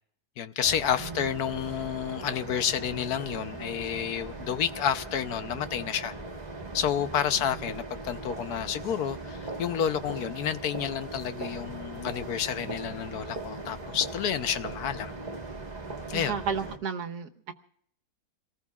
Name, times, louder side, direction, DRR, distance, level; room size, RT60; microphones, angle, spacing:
voice 1, 0.4-6.1 6.7-15.1 16.1-16.4, left 9 dB, 75° left, 1.3 m, -30 dB
sound 1, 0.6-16.8, right 2 dB, 25° right, 1.5 m, -39 dB
voice 2, 16.1-17.5, right 6 dB, 80° right, 1.7 m, -32 dB
28.0 x 19.0 x 2.4 m
omnidirectional pair, 1.7 m